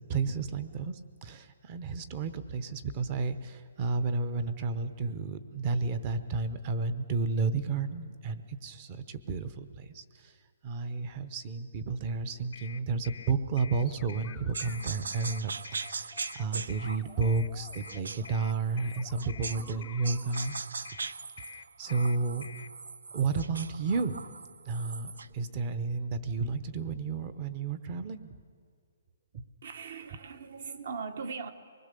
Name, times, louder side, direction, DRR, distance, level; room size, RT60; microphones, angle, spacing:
voice 1, 0.1-10.4 10.6-20.6 21.8-22.5 23.1-24.2 24.6-28.4 29.3-29.4, right 4 dB, 25° right, 12 dB, 0.8 m, -32 dB
sound 1, 12.5-22.7, left 6 dB, 65° left, 0.6 m, -48 dB
sound 2, 13.7-14.8 15.3-16.5 16.8-20.4, left 9 dB, 10° left, 0.5 m, -54 dB
sound 3, 14.5-19.8 20.0-25.4, right 4 dB, 90° right, 0.5 m, -41 dB
voice 2, 29.6-31.5, right 5 dB, 50° right, 10 dB, 1.3 m, -39 dB
24.0 x 20.5 x 6.8 m, 2.1 s
hypercardioid pair, 175°, 0 cm